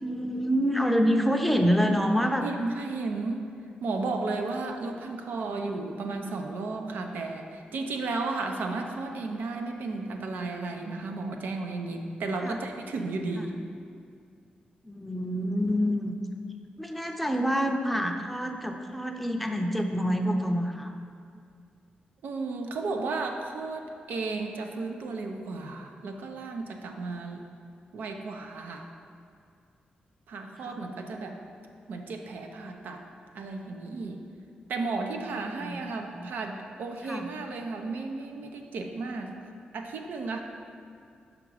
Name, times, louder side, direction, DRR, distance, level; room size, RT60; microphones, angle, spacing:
voice 1, 0.0-2.5 12.4-12.6 13.3-13.6 14.8-16.1 16.8-20.9 30.6-30.8 35.6-35.8 36.1-36.3 37.1-37.3, equal, ahead, 3 dB, 0.5 m, -27 dB
voice 2, 2.4-3.4 3.8-13.6 22.2-27.4 27.9-28.9 30.3-31.4 31.9-33.0 33.3-34.2 34.7-39.4 39.7-40.4, right 3 dB, 80° right, 4 dB, 0.6 m, -34 dB
5.9 x 5.1 x 4.7 m, 2.4 s
cardioid pair, 90°, 3 cm